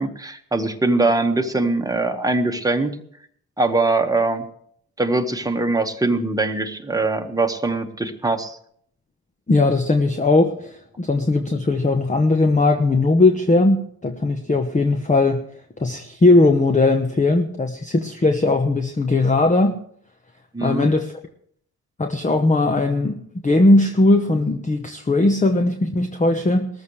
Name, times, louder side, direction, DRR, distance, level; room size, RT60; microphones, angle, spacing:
voice 1, 0.0-2.9 3.6-4.4 5.0-8.6 20.5-20.9, right 2 dB, 5° right, 5 dB, 1.5 m, -22 dB
voice 2, 9.5-15.4 15.8-19.7 20.6-21.1 22.0-26.7, left 2 dB, 15° left, 7 dB, 1.1 m, -18 dB
19.5 x 14.0 x 3.3 m, 0.65 s
figure-of-eight pair, 45°, 48 cm